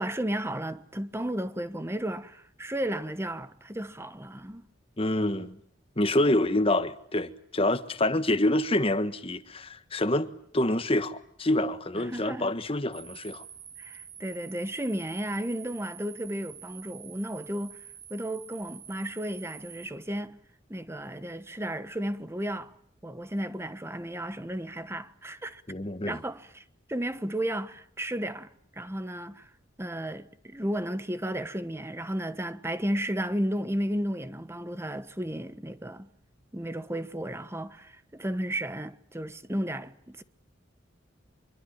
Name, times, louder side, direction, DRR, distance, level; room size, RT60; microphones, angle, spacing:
voice 1, 0.0-4.7 11.9-12.5 13.8-17.8 18.1-20.4 20.7-22.7 23.0-25.6 26.1-26.6 26.9-29.5 29.8-36.1 36.5-40.2, right 1 dB, 15° right, 1.2 m, -33 dB
voice 2, 5.0-5.6 6.0-13.4 25.7-26.2, left 1 dB, 30° left, 1.4 m, -27 dB
sound 1, 12.9-19.9, right 9 dB, 55° right, 3.2 m, -47 dB
25.0 x 23.5 x 8.7 m
head